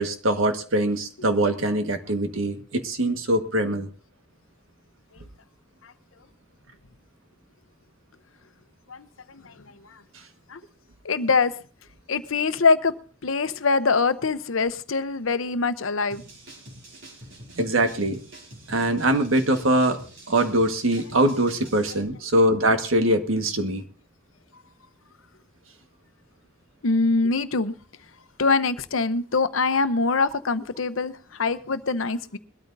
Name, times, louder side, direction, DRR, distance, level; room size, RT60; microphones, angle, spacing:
voice 1, 0.0-3.9 17.6-18.2 18.7-20.0 20.3-23.8, right 1 dB, 85° right, 1.6 m, -22 dB
voice 2, 8.9-9.5 10.5-10.6 11.0-11.5 12.1-12.9 13.2-16.2 26.8-27.7 28.4-32.4, left 4 dB, 80° left, 0.8 m, -23 dB
sound 1, 16.1-22.0, right 1 dB, 65° right, 4.8 m, -45 dB
22.0 x 13.0 x 2.7 m
head